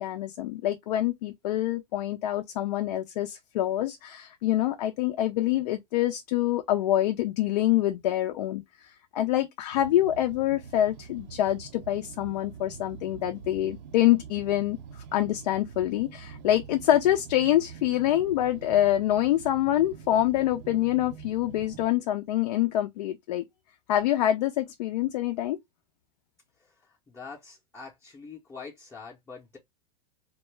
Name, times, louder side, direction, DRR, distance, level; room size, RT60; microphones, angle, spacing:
voice 1, 0.0-14.8 15.1-23.5 23.9-25.6, left 13 dB, 75° left, 0.4 m, -26 dB
sound 1, 9.7-21.9, right 7 dB, 80° right, 0.6 m, -45 dB
voice 2, 27.1-29.6, left 5 dB, 10° left, 0.6 m, -44 dB
2.3 x 2.1 x 3.2 m
hypercardioid pair, 120°, 21 cm